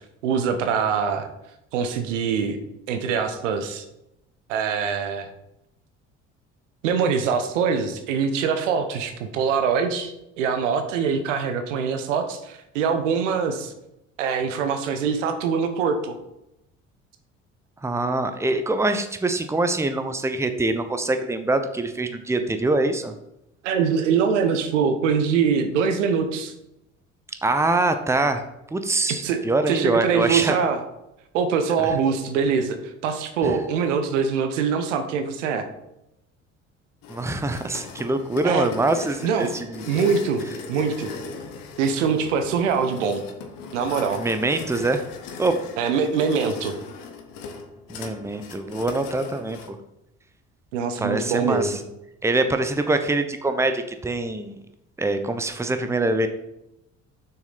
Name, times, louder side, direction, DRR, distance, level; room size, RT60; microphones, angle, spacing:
voice 1, 0.2-1.3 1.7-2.6 2.9-3.8 4.5-5.3 6.8-13.7 14.2-16.2 23.6-26.5 29.1-29.4 29.7-30.8 31.3-32.8 33.0-35.7 38.4-38.7 39.2-39.5 39.9-40.4 40.7-41.1 41.8-43.2 43.7-44.2 45.8-46.7 50.7-51.7, right 6 dB, 75° right, 8 dB, 0.9 m, -23 dB
voice 2, 17.8-23.1 27.4-28.4 28.7-30.6 31.8-31.9 33.4-33.6 37.1-39.8 44.2-45.0 45.4-45.5 47.9-49.8 51.0-51.8 52.2-54.6 55.0-56.3, right 2 dB, 5° right, 8 dB, 0.8 m, -24 dB
sound 1, 37.0-49.7, left 5 dB, 60° left, 1.2 m, -39 dB
7.1 x 6.2 x 4.0 m, 0.85 s
figure-of-eight pair, 55°, 37 cm